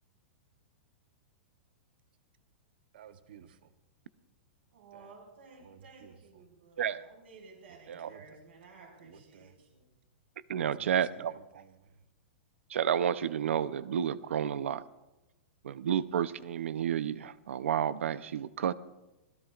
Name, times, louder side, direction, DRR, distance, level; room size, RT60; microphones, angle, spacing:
voice 1, 2.9-3.7 4.9-5.1 5.6-6.4 7.7-8.4 9.0-9.5 10.6-12.0, right 8 dB, 50° right, 10 dB, 0.9 m, -55 dB
voice 2, 4.7-9.8, right 4 dB, 65° right, 0 dB, 5.3 m, -55 dB
voice 3, 10.5-11.6 12.7-14.8 15.6-18.7, right 9 dB, 85° right, 15 dB, 0.7 m, -31 dB
26.0 x 17.5 x 2.5 m, 1.0 s
supercardioid pair, 180°, 7 cm